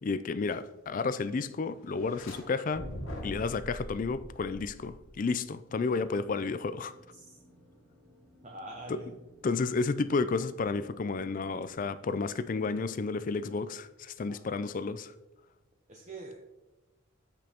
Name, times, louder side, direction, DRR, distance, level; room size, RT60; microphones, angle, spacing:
voice 1, 0.0-2.9 3.2-6.9 8.9-9.0 9.4-15.1, left 4 dB, 40° left, 0.3 m, -31 dB
sound 1, 1.9-2.4 2.7-5.3, left 1 dB, 80° left, 2.0 m, -42 dB
sound 2, 5.8-11.7, equal, 10° left, 2.1 m, -60 dB
voice 2, 8.4-9.1 14.3-14.5 15.9-16.4, right 2 dB, 35° right, 0.9 m, -44 dB
15.5 x 5.3 x 2.9 m
head